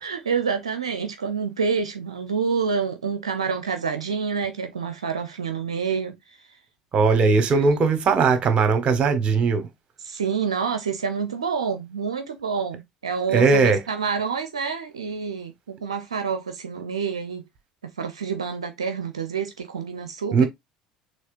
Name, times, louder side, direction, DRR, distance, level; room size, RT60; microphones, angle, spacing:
voice 1, 0.0-6.1 7.5-7.6 10.0-17.4 18.0-20.4, right 6 dB, 80° right, 0.5 m, -27 dB
voice 2, 6.9-9.7 13.3-13.8 20.3-20.5, right 4 dB, 40° right, 1.3 m, -19 dB
6.3 x 3.4 x 2.5 m
figure-of-eight pair, 60°, 3 cm